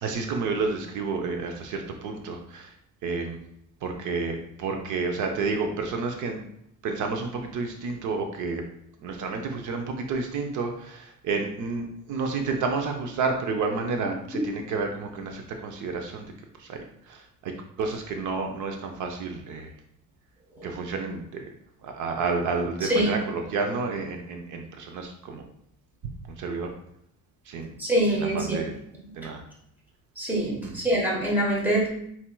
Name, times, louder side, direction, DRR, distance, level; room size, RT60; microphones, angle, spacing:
voice 1, 0.0-2.7 3.0-3.4 3.8-6.4 6.8-8.6 9.0-16.3 16.6-17.5 17.8-19.7 20.6-21.5 21.8-25.4 26.4-26.7 27.5-27.7 28.1-28.7 29.2-29.4 30.6-30.8, right 4 dB, 70° right, 4 dB, 0.6 m, -30 dB
voice 2, 27.8-28.6 30.2-31.9, right 1 dB, 5° right, -5 dB, 1.1 m, -24 dB
4.4 x 4.2 x 2.2 m, 0.72 s
cardioid pair, 180°, 32 cm